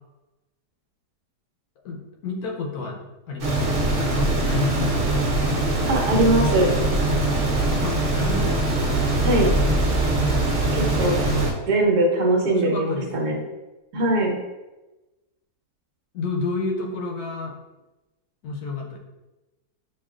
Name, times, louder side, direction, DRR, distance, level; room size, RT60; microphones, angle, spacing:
voice 1, 1.8-3.0 3.3-3.7 4.0-5.2 7.8-8.8 10.8-11.5 12.4-13.4 16.1-17.5 18.4-19.0, left 3 dB, 70° left, -1 dB, 1.2 m, -30 dB
sound 1, 3.4-11.5, right 2 dB, 55° right, 1.2 m, -22 dB
voice 2, 5.9-6.7 9.2-9.5 10.7-11.2 11.7-13.4 13.9-14.3, right 1 dB, 70° right, 0 dB, 1.3 m, -21 dB
7.0 x 2.4 x 2.4 m, 1.1 s
omnidirectional pair, 1.7 m